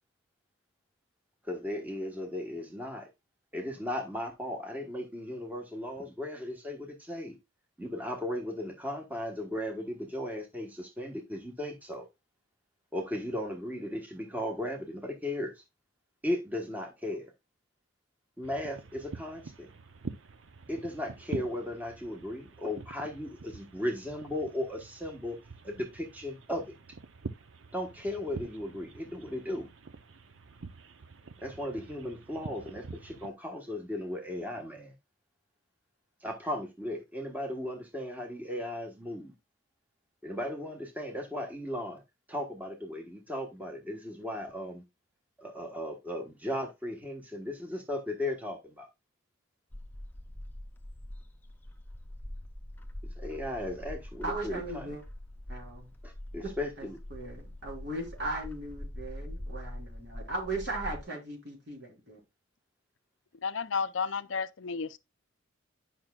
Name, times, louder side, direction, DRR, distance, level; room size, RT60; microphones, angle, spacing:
voice 1, 1.4-3.1 3.5-7.4 7.8-12.1 12.9-15.5 16.2-17.3 18.4-19.7 20.7-25.4 25.6-26.7 27.7-29.7 31.4-34.9 36.2-39.3 40.2-42.0 42.3-44.8 45.4-48.9 53.2-54.9 56.0-57.0, left 1 dB, 10° right, 1.2 m, -36 dB
sound 1, 18.4-33.3, right 4 dB, 70° right, 0.7 m, -46 dB
Bird, 49.7-61.0, left 1 dB, 10° left, 0.7 m, -43 dB
voice 2, 54.2-55.0 55.5-55.9 56.8-62.2, right 2 dB, 55° right, 3.9 m, -38 dB
voice 3, 63.4-65.0, left 5 dB, 65° left, 0.5 m, -32 dB
10.5 x 5.9 x 2.3 m
head